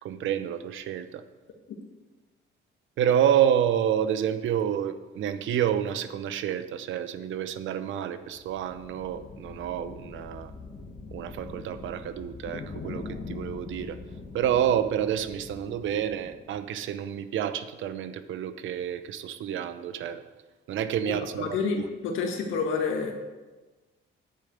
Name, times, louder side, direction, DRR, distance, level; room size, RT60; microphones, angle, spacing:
voice 1, 0.0-1.2 3.0-10.5 11.1-14.0 14.3-20.2 20.7-21.8, right 9 dB, 75° right, 12 dB, 0.7 m, -28 dB
sound 1, 8.3-16.7, left 4 dB, 45° left, 1.5 m, -42 dB
voice 2, 21.1-23.1, left 5 dB, 85° left, 2 dB, 1.8 m, -29 dB
10.5 x 5.1 x 7.7 m, 1.2 s
cardioid pair, 90°, 20 cm